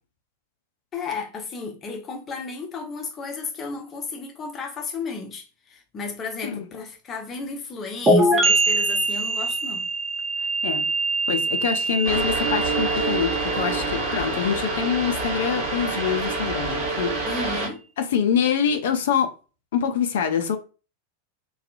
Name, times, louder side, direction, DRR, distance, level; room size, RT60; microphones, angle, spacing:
voice 1, 0.9-9.9 17.3-17.8, left 4 dB, 25° left, 0.7 m, -33 dB
sound 1, 8.1-15.6, right 2 dB, 15° right, 0.6 m, -24 dB
voice 2, 11.3-17.2 18.0-19.3 19.7-20.6, left 7 dB, 55° left, 0.4 m, -25 dB
sound 2, 12.0-17.7, right 3 dB, 40° right, 1.1 m, -27 dB
2.7 x 2.3 x 2.5 m
figure-of-eight pair, 90°, 0 cm